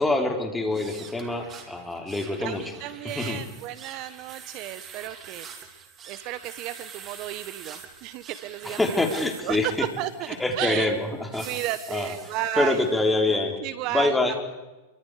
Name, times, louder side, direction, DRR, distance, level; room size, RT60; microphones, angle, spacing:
voice 1, 0.0-2.6 3.0-3.4 8.6-9.7 10.4-11.5 11.9-12.1 12.6-13.6 13.9-14.4, left 2 dB, 5° left, 3 dB, 4.1 m, -25 dB
sound 1, 0.7-13.2, right 6 dB, 30° right, 3.7 m, -45 dB
voice 2, 2.4-5.8 6.1-8.8 9.4-10.9 11.4-12.8 13.6-14.3, right 13 dB, 45° right, 13 dB, 1.1 m, -33 dB
28.5 x 24.5 x 5.0 m, 1.1 s
hypercardioid pair, 130°, 0 cm